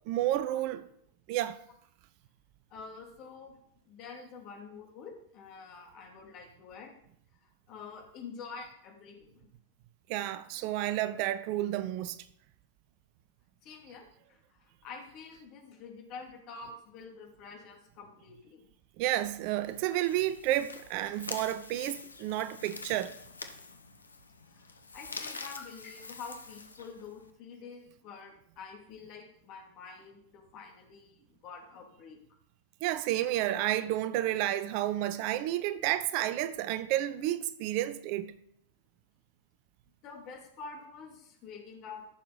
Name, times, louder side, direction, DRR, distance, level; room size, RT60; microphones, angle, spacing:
voice 1, 0.1-0.9 1.3-1.6 10.1-12.2 19.0-23.1 32.8-38.3, right 14 dB, 45° right, 0.6 m, -31 dB
voice 2, 2.7-3.6 3.9-6.9 7.4-9.5 13.6-18.7 24.5-32.2 40.0-42.1, left 5 dB, 40° left, 2.7 m, -47 dB
sound 1, 19.6-27.3, left 4 dB, 75° left, 1.0 m, -46 dB
14.0 x 6.6 x 4.1 m
figure-of-eight pair, 90°, 0 cm